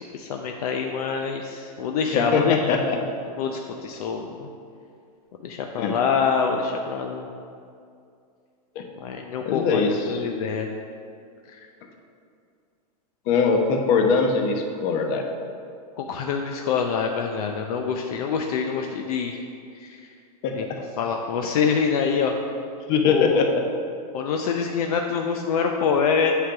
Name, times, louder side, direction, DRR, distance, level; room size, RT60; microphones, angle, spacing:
voice 1, 0.0-2.8 3.4-4.5 5.4-7.3 9.0-9.8 10.1-10.7 11.5-11.7 16.0-19.4 19.7-20.1 20.5-20.7 21.0-22.3 23.0-23.4 24.1-26.3, left 6 dB, 65° left, 3 dB, 0.6 m, -25 dB
voice 2, 2.1-3.0 5.8-5.9 8.7-8.8 9.4-10.2 13.3-15.2 20.4-20.5 22.9-23.6, left 5 dB, 45° left, 3 dB, 0.9 m, -21 dB
8.3 x 3.9 x 5.9 m, 2.4 s
supercardioid pair, 140°, 20 cm